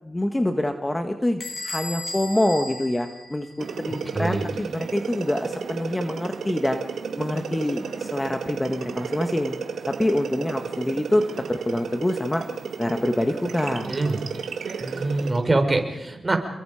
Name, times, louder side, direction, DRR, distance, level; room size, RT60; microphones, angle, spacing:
voice 1, 0.0-6.8 7.2-9.5 9.9-12.4 12.8-13.9, left 1 dB, 15° left, 6 dB, 1.8 m, -26 dB
Bell / Door, 1.4-3.9, left 2 dB, 50° left, 6.8 m, -36 dB
sound 1, 3.6-15.4, right 6 dB, 85° right, 2.2 m, -33 dB
voice 2, 3.9-4.5 13.9-14.2 14.8-16.4, right 2 dB, 25° right, 5 dB, 4.8 m, -24 dB
29.5 x 22.5 x 5.1 m, 0.90 s
cardioid pair, 80°, 0 cm